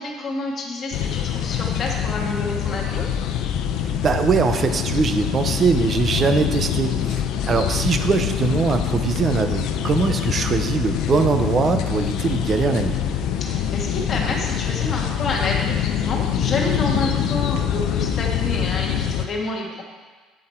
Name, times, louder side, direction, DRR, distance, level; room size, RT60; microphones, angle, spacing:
voice 1, 0.0-3.1 13.4-19.8, left 2 dB, 30° left, -2 dB, 1.5 m, -28 dB
sound 1, 0.9-19.3, left 9 dB, 60° left, 0.6 m, -24 dB
voice 2, 3.8-13.0, right 5 dB, 25° right, 7 dB, 0.6 m, -22 dB
8.6 x 7.7 x 4.4 m, 1.4 s
cardioid pair, 165°, 0 cm